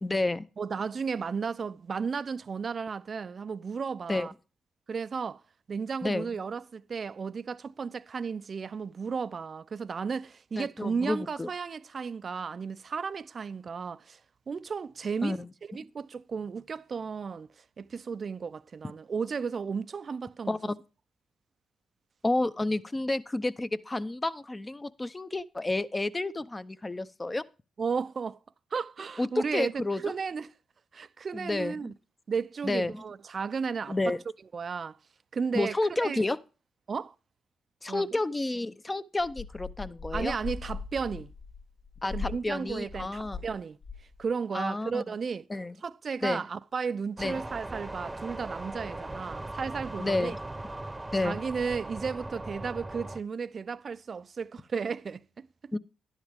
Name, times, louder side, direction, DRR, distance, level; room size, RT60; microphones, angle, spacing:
voice 1, 0.0-0.4 4.1-4.3 6.0-6.4 10.6-11.5 15.2-15.5 20.5-20.7 22.2-27.4 29.2-30.0 31.3-31.9 32.6-33.0 33.9-34.2 35.5-36.4 37.8-40.3 42.0-43.4 44.5-45.0 45.5-45.8 46.2-46.4 47.2-47.4 50.0-50.4 51.1-51.4 55.7-55.8, left 2 dB, 25° left, 0.8 m, -30 dB
voice 2, 0.6-4.3 4.9-5.4 5.7-14.2 14.5-15.4 15.7-17.5 17.8-20.6 27.8-28.4 28.7-30.5 30.9-31.9 32.3-34.0 34.5-35.0 35.3-36.2 36.9-37.1 37.9-38.1 40.1-41.3 42.1-43.8 44.2-45.5 45.8-50.4 51.2-55.7, right 5 dB, 50° right, 0.5 m, -34 dB
sound 1, 39.2-43.5 43.8-44.2, left 5 dB, 75° left, 7.9 m, -39 dB
sound 2, 47.2-53.2, right 2 dB, 15° right, 0.9 m, -39 dB
12.0 x 10.5 x 3.6 m
supercardioid pair, 50°, 0 cm